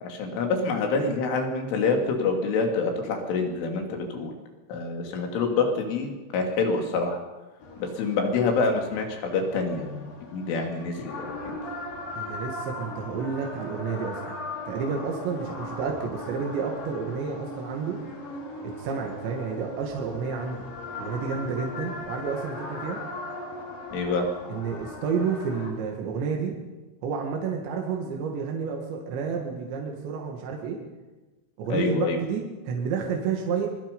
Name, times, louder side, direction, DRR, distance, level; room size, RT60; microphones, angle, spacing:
voice 1, 0.0-4.3 4.7-7.2 7.8-11.3 23.9-24.3 31.7-32.2, left 4 dB, 80° left, 3 dB, 5.3 m, -26 dB
sound 1, 7.6-25.7, left 2 dB, 50° left, 4.8 m, -38 dB
voice 2, 12.2-14.4 14.7-18.0 18.6-20.6 21.0-23.0 24.5-26.6 27.0-30.8 31.6-33.7, right 5 dB, 70° right, 1 dB, 4.1 m, -30 dB
24.5 x 22.5 x 5.4 m, 1.2 s
omnidirectional pair, 5.5 m